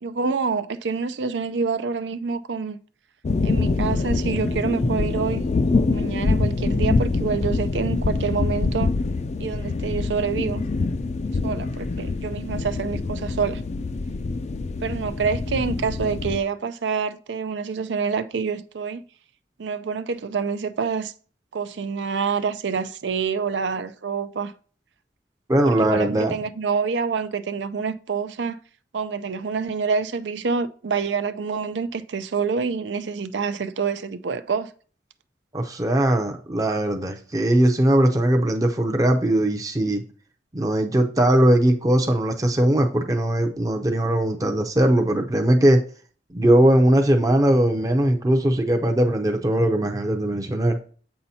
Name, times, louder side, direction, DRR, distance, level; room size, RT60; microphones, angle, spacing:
voice 1, 0.0-2.8 3.4-5.5 5.9-8.9 9.4-10.6 11.4-13.6 14.8-19.0 19.6-21.1 21.5-24.5 25.6-28.6 28.9-34.7, right 5 dB, 85° right, 0.5 m, -27 dB
sound 1, 3.2-16.4, left 3 dB, 40° left, 0.4 m, -25 dB
voice 2, 25.5-26.3 35.5-40.0 40.5-45.8 46.3-50.8, right 1 dB, 20° right, 0.6 m, -20 dB
7.7 x 5.7 x 2.8 m
head